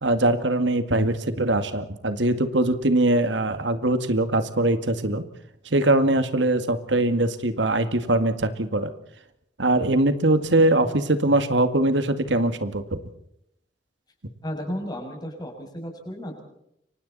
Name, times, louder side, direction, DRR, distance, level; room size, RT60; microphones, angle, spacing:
voice 1, 0.0-5.3 5.7-8.9 9.6-13.0, right 2 dB, 85° right, 10 dB, 2.1 m, -22 dB
voice 2, 14.4-16.4, equal, 25° left, 3 dB, 7.2 m, -33 dB
29.5 x 25.0 x 4.2 m, 0.76 s
head